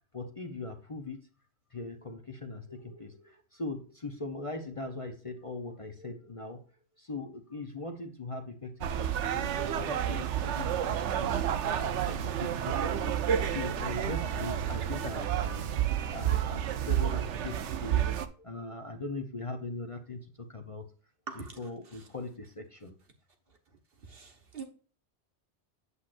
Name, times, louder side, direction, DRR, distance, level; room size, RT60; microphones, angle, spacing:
voice 1, 0.1-1.2 1.7-6.6 7.0-13.1 13.5-15.7 16.1-20.9 21.3-23.0, left 3 dB, 35° left, 0.7 m, -40 dB
sound 1, 8.8-18.3, right 10 dB, 85° right, 1.0 m, -30 dB
voice 2, 21.3-21.6 24.0-24.6, right 5 dB, 55° right, 1.3 m, -43 dB
8.2 x 7.4 x 2.5 m
omnidirectional pair, 1.2 m